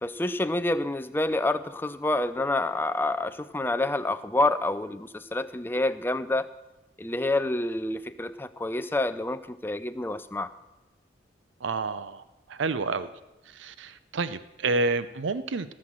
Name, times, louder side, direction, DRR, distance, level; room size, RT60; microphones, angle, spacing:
voice 1, 0.0-6.5 7.0-10.5, left 2 dB, 10° left, 11 dB, 0.4 m, -28 dB
voice 2, 11.6-12.2 12.5-13.1 13.6-15.7, right 3 dB, 85° right, 14 dB, 0.6 m, -29 dB
17.0 x 6.4 x 7.4 m, 1.0 s
head